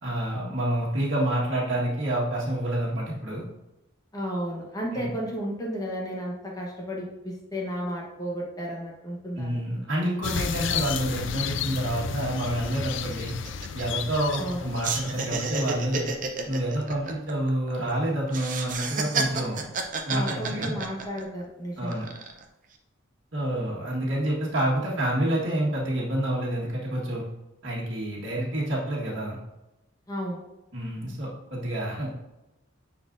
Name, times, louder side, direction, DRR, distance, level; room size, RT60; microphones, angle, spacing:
voice 1, 0.0-3.4 4.9-5.1 9.3-13.3 13.7-16.1 16.5-19.6 20.1-20.8 21.8-22.1 23.3-27.2 27.6-29.4 30.7-32.2, right 1 dB, 65° right, -5 dB, 1.7 m, -28 dB
voice 2, 4.1-9.6 14.4-14.6 20.1-22.0 30.1-30.4, equal, 20° left, -2 dB, 1.1 m, -33 dB
sound 1, 10.2-16.0, left 7 dB, 65° left, 0.4 m, -32 dB
sound 2, 12.0-12.1 12.4-12.6 12.9-14.5 14.8-17.9 18.3-21.4 21.9-22.4, right 4 dB, 40° right, 0.7 m, -31 dB
9.6 x 4.2 x 2.6 m, 0.98 s
head